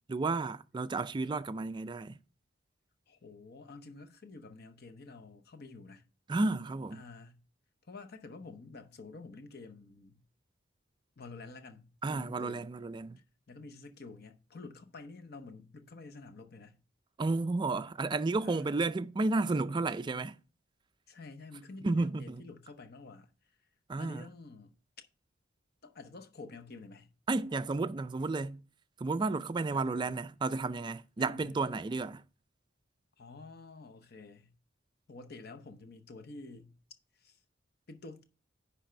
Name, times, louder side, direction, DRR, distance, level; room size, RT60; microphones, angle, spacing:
voice 1, 0.1-2.2 6.3-7.0 12.0-13.2 17.2-20.4 21.8-22.4 23.9-24.3 27.3-28.6 29.0-32.2, right 3 dB, 25° right, 0.3 m, -32 dB
voice 2, 3.1-6.0 6.9-7.4 7.9-10.2 11.2-12.7 13.5-16.8 18.4-18.7 21.1-23.3 24.0-24.7 25.8-27.1 29.7-30.2 31.2-31.6 33.2-34.5 35.1-36.7 37.2-37.4 37.9-38.2, left 3 dB, 55° left, 0.8 m, -49 dB
10.0 x 3.4 x 5.5 m
head